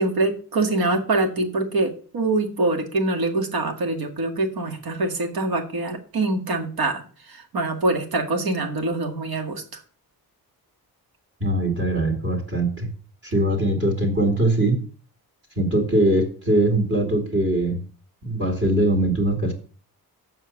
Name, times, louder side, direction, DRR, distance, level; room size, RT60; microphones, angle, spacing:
voice 1, 0.0-9.8, right 2 dB, 70° right, 5 dB, 2.0 m, -24 dB
voice 2, 11.4-12.9 13.2-14.8 15.6-17.8 18.2-19.5, right 1 dB, 40° right, 1 dB, 2.5 m, -21 dB
7.4 x 5.7 x 7.1 m, 0.41 s
wide cardioid pair, 135°, 38 cm